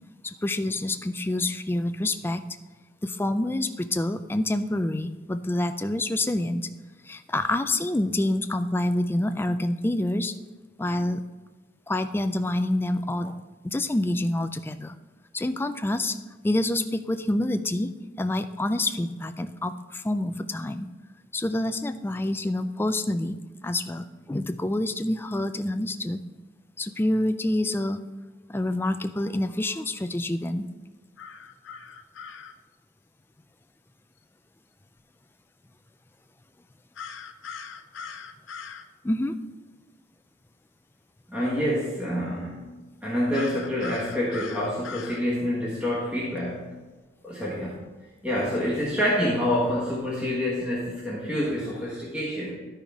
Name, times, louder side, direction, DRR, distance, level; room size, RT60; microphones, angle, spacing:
voice 1, 0.2-2.4 3.0-6.7 7.0-10.3 10.8-11.2 11.9-15.0 15.3-16.2 16.4-17.9 18.2-20.9 21.3-26.2 26.8-28.0 28.5-30.7 39.0-39.4, left 1 dB, 10° left, 9 dB, 0.3 m, -27 dB
sound 1, 31.2-32.5 37.0-38.9 43.3-45.2, left 6 dB, 80° left, 0.6 m, -40 dB
voice 2, 41.3-42.7 43.0-46.8 47.2-47.8 48.2-52.6, equal, 5° right, -6 dB, 1.4 m, -27 dB
12.5 x 5.6 x 3.5 m, 1.3 s
head